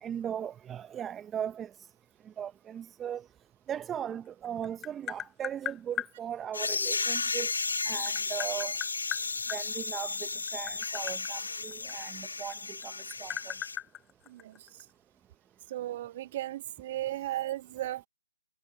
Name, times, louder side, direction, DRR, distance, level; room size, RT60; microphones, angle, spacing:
voice 1, 0.0-1.7 2.4-3.2 3.7-7.5 7.8-8.7 9.5-12.9 13.2-13.5, right 9 dB, 10° right, 1.0 m, -38 dB
Tap, 4.3-6.1 7.5-9.6 10.4-12.5 12.8-14.8, left 11 dB, 15° left, 0.4 m, -38 dB
sound 1, 6.5-13.8, left 4 dB, 75° left, 0.6 m, -34 dB
voice 2, 14.3-14.9 15.7-18.1, right 14 dB, 35° right, 2.0 m, -36 dB
figure-of-eight pair, 150°, 0 cm